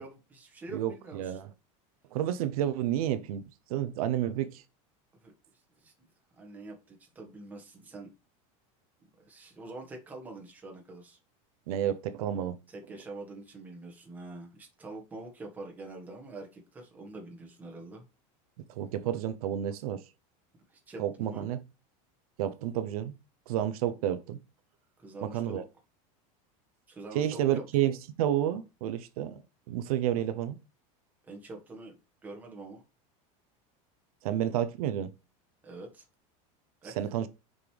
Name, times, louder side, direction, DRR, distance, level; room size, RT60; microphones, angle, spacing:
voice 1, 0.0-1.4 5.2-5.3 5.8-5.9 6.4-8.1 9.2-11.2 12.7-18.0 20.7-21.5 25.0-25.7 26.9-27.6 31.2-32.0 32.2-32.8 35.6-36.0 36.8-37.2, right 2 dB, 10° right, 1.6 m, -45 dB
voice 2, 0.7-1.4 2.1-3.4 3.7-4.6 11.7-12.6 18.8-20.0 21.0-21.6 22.4-23.1 23.5-24.4 25.2-25.6 27.1-29.4 29.7-30.6 34.2-35.1 37.0-37.3, right 11 dB, 85° right, 0.8 m, -30 dB
6.1 x 5.3 x 3.3 m
supercardioid pair, 180°, 18 cm